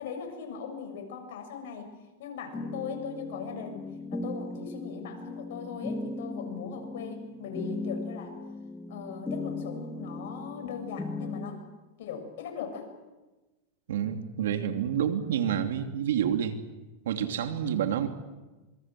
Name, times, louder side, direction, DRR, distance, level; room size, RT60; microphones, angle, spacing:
voice 1, 0.0-1.9 2.2-8.3 8.9-11.6 12.0-12.9, left 6 dB, 75° left, 4 dB, 7.3 m, -39 dB
sound 1, 2.5-11.5, left 2 dB, 10° left, 2.7 m, -38 dB
voice 2, 13.9-16.6 17.1-18.1, right 9 dB, 85° right, 7 dB, 2.8 m, -28 dB
26.5 x 23.0 x 7.7 m, 1.2 s
supercardioid pair, 130°, 0 cm